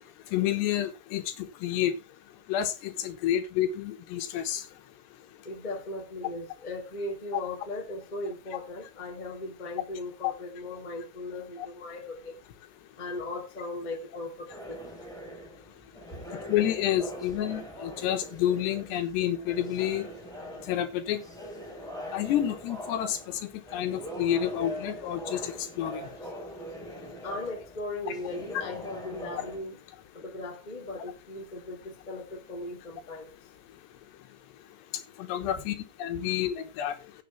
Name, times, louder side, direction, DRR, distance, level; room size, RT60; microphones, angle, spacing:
voice 1, 0.3-1.2 1.6-1.9 2.5-4.6 10.2-10.3 16.5-20.1 20.7-21.2 22.1-23.2 23.7-26.0 35.2-37.0, left 11 dB, 80° left, 3.3 m, -29 dB
voice 2, 5.4-12.4 13.0-14.8 27.2-29.8 30.1-33.3 35.4-35.5, left 2 dB, 15° left, 1.5 m, -38 dB
sound 1, 14.5-29.6, equal, ahead, 2.9 m, -42 dB
16.0 x 6.7 x 3.3 m
omnidirectional pair, 5.0 m